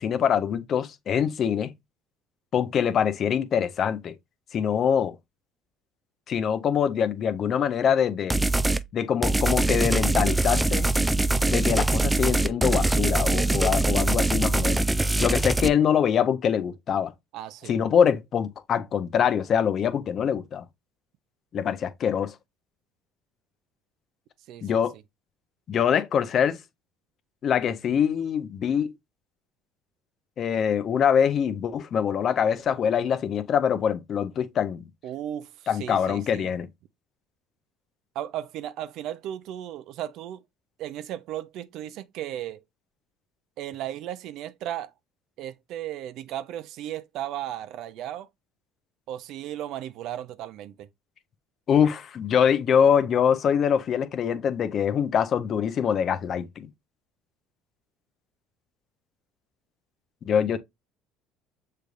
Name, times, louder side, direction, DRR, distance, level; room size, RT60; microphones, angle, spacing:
voice 1, 0.0-1.7 2.5-4.2 4.5-5.2 6.3-8.4 8.9-10.9 11.4-14.8 15.2-17.1 17.7-20.6 21.5-22.3 24.6-24.9 25.7-26.6 27.4-28.9 30.4-34.9 35.7-36.7 51.7-56.7 60.3-60.6, left 8 dB, 50° left, 0.7 m, -24 dB
sound 1, 8.3-8.8 9.2-15.7, right 2 dB, 10° right, 0.3 m, -23 dB
voice 2, 17.3-17.8 24.5-24.8 35.0-36.5 38.1-40.4 40.8-42.6 43.6-44.9 45.4-48.3 49.1-50.9, right 12 dB, 65° right, 0.5 m, -35 dB
6.6 x 3.3 x 2.4 m
supercardioid pair, 80°, 0 cm